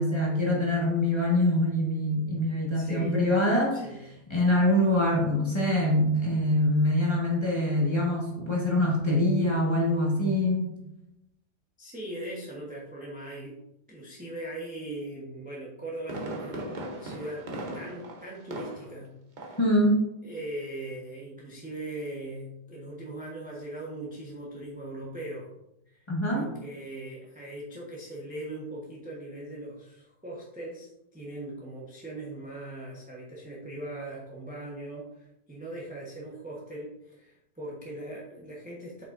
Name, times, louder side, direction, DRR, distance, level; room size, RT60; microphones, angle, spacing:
voice 1, 0.0-3.8 4.3-10.7 19.6-20.0 26.1-26.5, left 1 dB, 15° left, -4 dB, 1.2 m, -24 dB
voice 2, 2.7-3.1 3.7-4.0 11.8-13.6 13.9-16.7 17.0-17.4 17.7-19.1 19.4-19.6 20.2-25.5 25.9-39.0, right 1 dB, 5° right, -4 dB, 0.7 m, -40 dB
Fireworks, 15.6-19.1 19.4-19.7 20.1-20.2, right 1 dB, 55° right, 0.5 m, -38 dB
7.3 x 5.6 x 2.6 m, 0.86 s
omnidirectional pair, 2.0 m